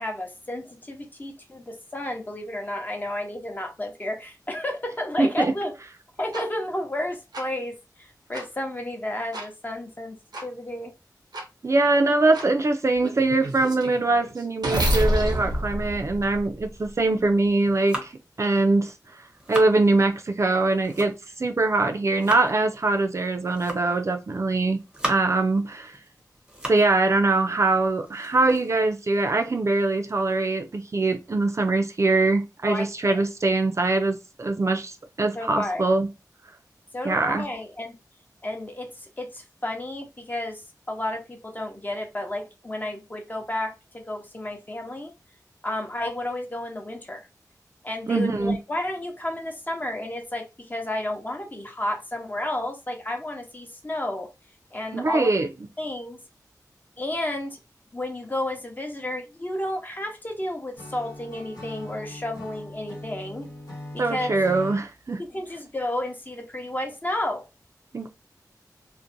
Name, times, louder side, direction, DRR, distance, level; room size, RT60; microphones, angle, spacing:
voice 1, 0.0-5.7 6.2-10.9 32.6-33.2 35.3-35.9 36.9-37.9 38.4-45.1 45.6-47.3 47.8-54.3 54.7-55.3 55.8-56.2 57.0-57.6 57.9-63.5 63.9-64.4 65.3-67.4, left 1 dB, 25° left, 0.7 m, -32 dB
voice 2, 5.2-5.5 11.6-18.1 18.4-18.9 19.5-26.0 26.7-36.1 37.0-37.4 48.1-48.6 54.9-55.5 64.0-65.2 67.9-68.1, right 2 dB, 45° right, 0.4 m, -23 dB
sound 1, 6.3-6.4 7.3-7.4 8.3-8.4 9.3-9.5 10.3-10.4 11.3-11.4 12.3-12.5 13.0-16.9, right 1 dB, 90° right, 0.6 m, -28 dB
sound 2, 17.6-18.3 19.0-19.8 20.5-21.4 21.8-22.5 23.4-24.0 24.6-25.5 25.9-27.0 27.3-27.4 27.8-29.6, right 1 dB, 15° right, 0.7 m, -37 dB
Acoustic guitar / Strum, 60.8-64.9, left 1 dB, 75° left, 1.1 m, -40 dB
2.5 x 2.1 x 2.6 m
wide cardioid pair, 70°, 7 cm